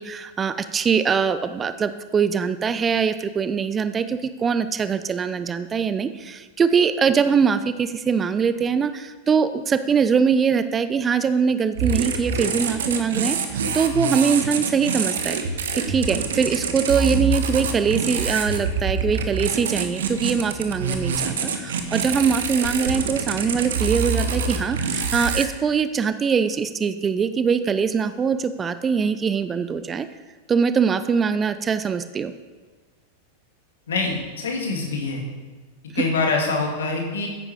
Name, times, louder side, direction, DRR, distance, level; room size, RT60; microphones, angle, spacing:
voice 1, 0.0-15.4 15.9-30.1 30.5-32.3 35.9-36.0, right 6 dB, 20° right, 12 dB, 0.6 m, -22 dB
sound 1, 11.7-25.5, right 5 dB, 60° right, 1.4 m, -26 dB
voice 2, 33.9-35.2 35.9-37.3, left 3 dB, 65° left, 0 dB, 3.0 m, -24 dB
14.0 x 10.0 x 4.8 m, 1.3 s
figure-of-eight pair, 90°, 0 cm